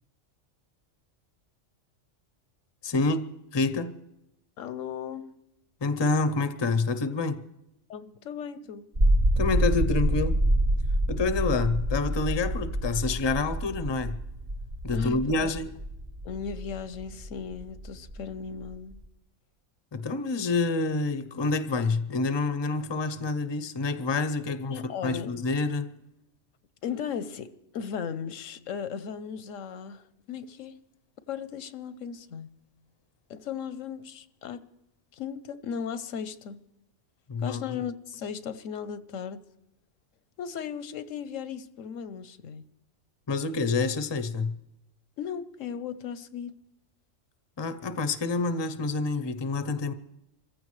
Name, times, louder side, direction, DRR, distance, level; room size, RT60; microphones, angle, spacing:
voice 1, 2.8-4.0 5.8-7.4 9.4-10.4 11.1-14.2 14.8-15.7 19.9-25.9 37.3-37.8 43.3-44.5 47.6-49.9, left 3 dB, 30° left, 0.6 m, -28 dB
voice 2, 4.6-5.3 7.9-8.9 14.9-15.5 16.2-19.0 24.7-25.3 26.8-30.8 31.3-32.5 33.3-34.6 35.1-36.6 37.4-39.4 40.4-42.7 45.2-46.6, left 7 dB, 90° left, 1.1 m, -36 dB
sound 1, 8.9-19.1, right 1 dB, 35° right, 1.0 m, -27 dB
27.5 x 15.0 x 3.2 m
omnidirectional pair, 1.3 m